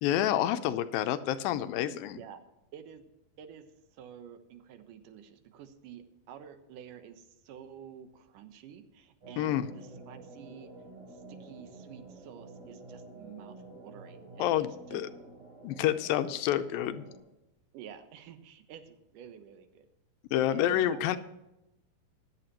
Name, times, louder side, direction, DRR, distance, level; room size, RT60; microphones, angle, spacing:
voice 1, 0.0-2.2 9.4-9.7 14.4-15.1 15.6-17.0 20.3-21.2, left 11 dB, 85° left, 10 dB, 2.4 m, -28 dB
voice 2, 1.9-2.4 2.7-3.0 3.4-3.6 3.9-10.7 11.3-15.0 17.7-19.9 20.5-21.2, right 9 dB, 70° right, 9 dB, 2.5 m, -49 dB
sound 1, 9.2-17.2, right 2 dB, 40° right, 6.3 m, -50 dB
15.5 x 11.5 x 3.0 m, 0.93 s
omnidirectional pair, 4.1 m